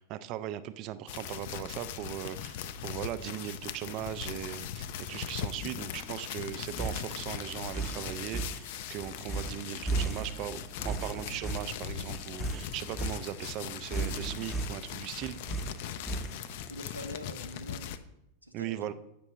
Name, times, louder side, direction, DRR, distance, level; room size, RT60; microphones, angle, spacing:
voice 1, 0.0-15.4 18.5-18.9, right 12 dB, 40° right, 13 dB, 0.3 m, -38 dB
sound 1, 1.1-18.0, left 10 dB, 50° left, 0.3 m, -40 dB
sound 2, 6.7-16.7, right 3 dB, 5° right, 0.6 m, -36 dB
voice 2, 16.2-17.9 18.4-18.9, equal, 90° right, 6 dB, 0.6 m, -45 dB
8.7 x 6.0 x 2.9 m, 0.87 s
figure-of-eight pair, 90°, 0 cm